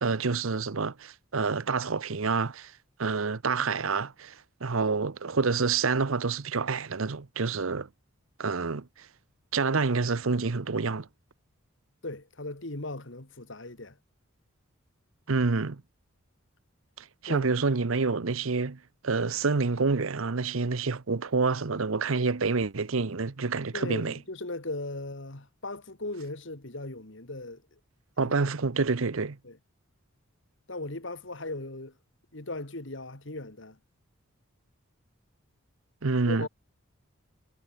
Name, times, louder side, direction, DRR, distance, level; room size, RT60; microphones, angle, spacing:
voice 1, 0.0-2.7 3.0-4.4 4.6-7.9 8.4-8.9 9.5-11.1 15.3-15.8 17.2-18.8 19.0-24.2 28.2-29.4 36.0-36.5, right 4 dB, 75° right, 0.8 m, -27 dB
voice 2, 12.0-14.0 17.3-17.5 23.7-27.8 28.2-28.3 29.4-29.6 30.7-31.9 32.3-33.8 36.2-36.5, left 2 dB, 60° left, 2.1 m, -38 dB
head